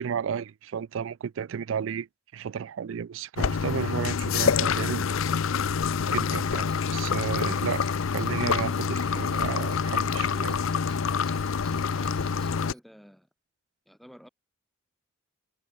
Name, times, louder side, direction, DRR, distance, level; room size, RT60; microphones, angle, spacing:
voice 1, 0.0-2.1 2.3-5.0 6.1-7.8 8.1-10.6, right 7 dB, 70° right, 0.3 m, -33 dB
sound 1, 3.4-12.7, left 6 dB, 75° left, 0.6 m, -27 dB
sound 2, 4.3-10.2, left 1 dB, 50° left, 6.5 m, -53 dB
Bell, 6.6-12.8, right 5 dB, 20° right, 6.1 m, -55 dB
voice 2, 11.9-13.3 13.9-14.3, equal, ahead, 4.8 m, -49 dB
head